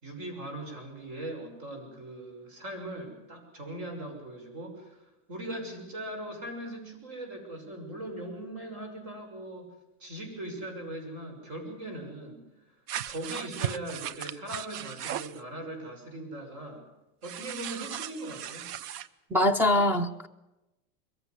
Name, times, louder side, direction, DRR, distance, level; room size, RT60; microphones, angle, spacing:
voice 1, 0.0-9.7 10.0-12.5 13.1-16.9 17.2-18.7, right 1 dB, 40° right, 6.8 m, -40 dB
sound 1, 12.9-15.4 17.2-19.1, right 11 dB, 80° right, 1.0 m, -37 dB
voice 2, 19.3-20.3, left 1 dB, 5° right, 0.7 m, -23 dB
22.0 x 16.0 x 9.8 m
supercardioid pair, 160°, 46 cm